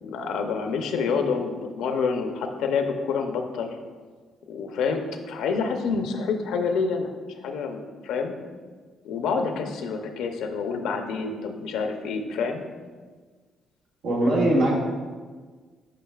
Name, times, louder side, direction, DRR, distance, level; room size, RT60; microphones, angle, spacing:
voice 1, 0.0-3.8 4.5-7.1 7.4-8.3 9.0-12.6, left 5 dB, 85° left, 5 dB, 0.6 m, -27 dB
voice 2, 14.0-14.7, right 1 dB, 85° right, -4 dB, 1.8 m, -20 dB
8.9 x 5.1 x 2.3 m, 1.5 s
cardioid pair, 90°, 0 cm